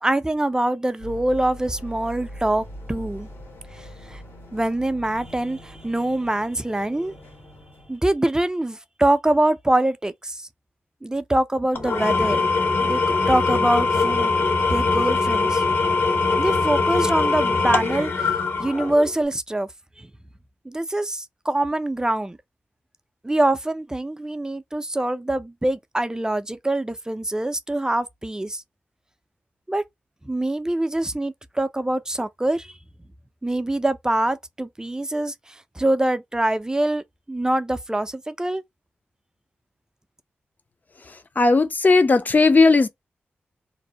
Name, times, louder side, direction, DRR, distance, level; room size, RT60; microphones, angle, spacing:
voice 1, 0.0-3.3 4.1-4.2 4.5-7.1 7.9-10.5 11.0-12.4 12.8-14.3 14.7-15.6 16.4-18.1 18.6-19.7 20.0-20.1 20.7-22.4 23.2-28.6 29.7-29.8 30.3-32.7 33.4-35.3 35.8-38.6, right 1 dB, 15° right, 0.4 m, -24 dB
sound 1, 1.0-8.0, equal, 80° left, 1.5 m, -41 dB
Engine / Tools, 11.7-19.2, left 4 dB, 55° left, 0.9 m, -22 dB
voice 2, 41.4-42.9, left 3 dB, 40° left, 0.5 m, -16 dB
2.6 x 2.0 x 2.7 m
cardioid pair, 50°, 4 cm